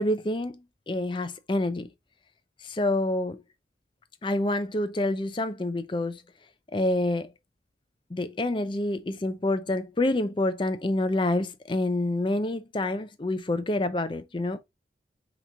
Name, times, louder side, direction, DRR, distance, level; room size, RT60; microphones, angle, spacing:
voice 1, 0.0-1.9 2.6-3.4 4.2-6.2 6.7-7.3 8.1-14.6, left 1 dB, 25° left, 0.4 m, -27 dB
4.5 x 3.0 x 3.8 m
head